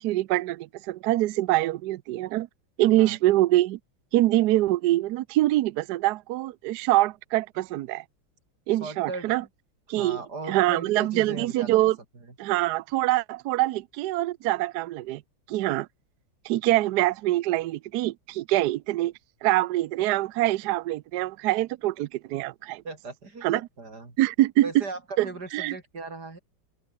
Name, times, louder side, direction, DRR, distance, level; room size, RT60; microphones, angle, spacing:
voice 1, 0.0-2.5 2.8-3.8 4.1-8.0 8.7-9.4 9.9-10.2 10.5-12.0 12.4-15.2 15.5-15.9 16.4-19.1 19.4-22.8 23.4-23.6 24.2-24.7 25.2-25.3 25.5-25.7, right 16 dB, 75° right, 0.9 m, -24 dB
voice 2, 2.8-3.2 8.8-9.3 9.9-11.8 12.3-12.4 16.7-16.8 22.8-24.2 24.6-26.4, right 3 dB, 50° right, 4.8 m, -38 dB
open air
omnidirectional pair, 2.3 m